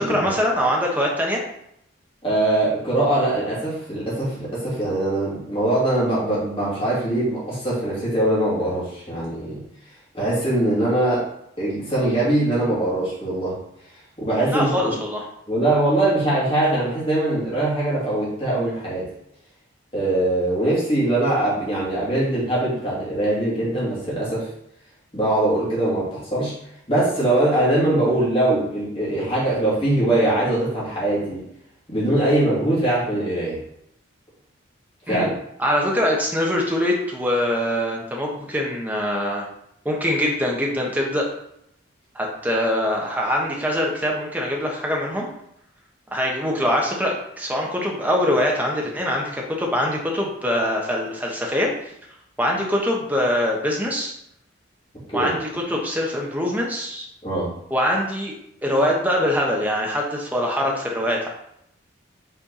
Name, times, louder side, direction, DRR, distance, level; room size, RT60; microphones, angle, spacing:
voice 1, 0.1-1.4 14.5-15.2 35.1-35.3 35.6-39.5 39.8-41.3 42.1-45.3 46.1-51.9 52.4-54.1 55.1-57.0 57.7-58.3 58.6-61.3, equal, 10° right, -1 dB, 1.1 m, -23 dB
voice 2, 2.2-9.6 10.1-11.2 11.6-13.6 14.2-15.0 15.5-19.1 19.9-24.5 25.1-26.5 26.9-31.4 31.9-33.6 35.1-35.3 55.1-55.3 57.2-57.5, right 1 dB, 25° left, -7 dB, 2.6 m, -22 dB
5.8 x 4.4 x 4.2 m, 0.75 s
head